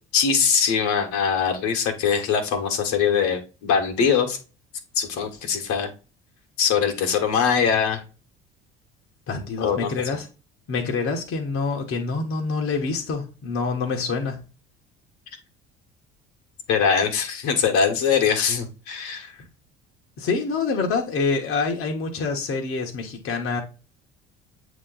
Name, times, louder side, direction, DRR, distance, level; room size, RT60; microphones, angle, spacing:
voice 1, 0.1-4.4 4.9-5.9 6.6-8.0 9.6-9.9 16.7-19.4, left 6 dB, 65° left, 1.5 m, -22 dB
voice 2, 9.3-10.3 10.7-14.4 20.2-23.6, left 4 dB, 45° left, 1.3 m, -26 dB
8.0 x 3.0 x 3.9 m
hypercardioid pair, 60°, 31 cm